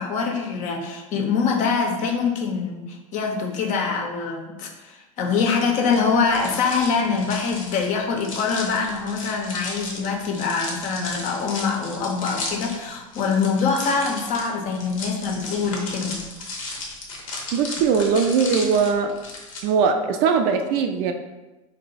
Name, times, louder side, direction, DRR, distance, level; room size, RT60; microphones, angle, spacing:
voice 1, 0.0-16.2, left 5 dB, 50° left, 2 dB, 0.6 m, -24 dB
sound 1, 5.8-19.6, left 2 dB, 85° left, 0.7 m, -35 dB
voice 2, 17.5-19.2 19.6-21.1, right 6 dB, 55° right, 6 dB, 0.4 m, -20 dB
2.9 x 2.0 x 4.0 m, 1.1 s
hypercardioid pair, 90°, 17 cm